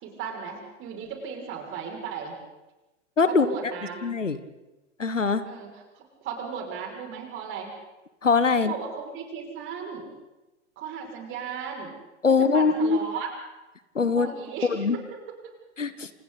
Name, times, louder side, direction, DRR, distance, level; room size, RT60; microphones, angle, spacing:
voice 1, 0.0-2.4 3.3-4.0 5.4-5.7 6.0-7.7 8.6-10.1 10.8-11.9 12.5-13.3 14.1-14.7, right 6 dB, 35° right, 1 dB, 6.2 m, -36 dB
voice 2, 3.2-3.5 4.0-4.4 5.0-5.4 8.2-8.7 12.2-13.0 13.9-14.3 14.6-15.0 15.8-16.1, left 4 dB, 85° left, 12 dB, 1.5 m, -22 dB
29.0 x 27.0 x 4.1 m, 1.1 s
figure-of-eight pair, 95°, 36 cm